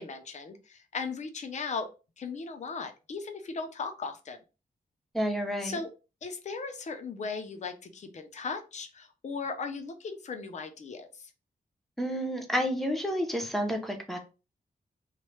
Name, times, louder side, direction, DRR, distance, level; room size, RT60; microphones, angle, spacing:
voice 1, 0.0-1.9 2.2-4.4 5.6-5.9 6.2-11.3, left 4 dB, 50° left, 7 dB, 0.5 m, -37 dB
voice 2, 5.1-5.8 12.0-14.2, equal, ahead, 3 dB, 0.6 m, -30 dB
3.0 x 2.1 x 3.1 m, 0.31 s
wide cardioid pair, 145°, 16 cm